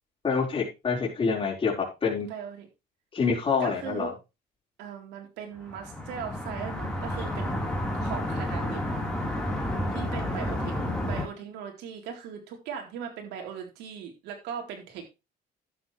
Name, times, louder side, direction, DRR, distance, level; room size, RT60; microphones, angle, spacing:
voice 1, 0.2-2.3 3.1-4.1, left 5 dB, 30° left, -3 dB, 5.0 m, -27 dB
voice 2, 2.3-2.7 3.6-4.1 4.8-7.6 7.9-8.8 9.9-10.7 11.0-15.0, right 8 dB, 85° right, 2 dB, 4.0 m, -39 dB
sound 1, 5.6-11.3, left 1 dB, 5° left, 4.2 m, -31 dB
12.0 x 9.3 x 3.4 m, 0.27 s
cardioid pair, 110°, 17 cm